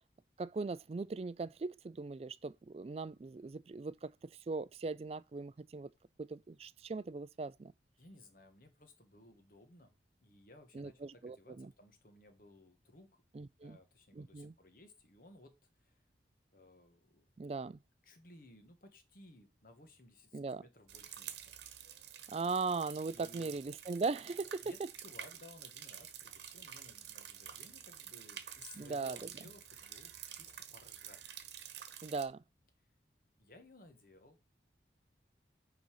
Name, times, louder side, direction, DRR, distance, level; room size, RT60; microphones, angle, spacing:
voice 1, 0.4-4.1 4.5-5.9 6.2-7.7 10.7-11.7 13.3-13.8 14.1-14.5 17.4-17.8 20.3-20.6 22.3-24.6 28.8-29.3 32.0-32.4, right 4 dB, 35° right, 0.3 m, -39 dB
voice 2, 8.0-9.9 10.2-13.2 13.6-16.0 16.5-17.6 18.0-21.7 23.1-23.6 24.6-31.4 33.4-34.4, left 2 dB, 50° left, 1.5 m, -59 dB
sound 1, 20.9-32.3, right 9 dB, 75° right, 1.1 m, -49 dB
9.5 x 4.0 x 4.7 m
head